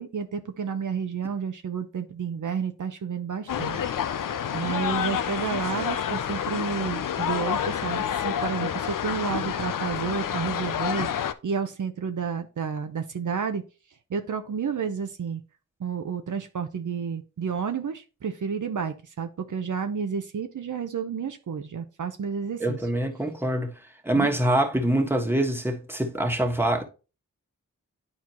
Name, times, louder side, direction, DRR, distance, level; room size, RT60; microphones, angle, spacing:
voice 1, 0.0-3.8 4.5-13.6 14.1-15.4 15.8-22.8 24.1-24.3, right 6 dB, 65° right, 0.7 m, -31 dB
sound 1, 3.5-11.3, left 8 dB, 75° left, 0.6 m, -28 dB
voice 2, 22.6-23.7 24.0-26.8, right 1 dB, 5° right, 1.5 m, -24 dB
9.7 x 4.4 x 3.0 m
cardioid pair, 55°, 33 cm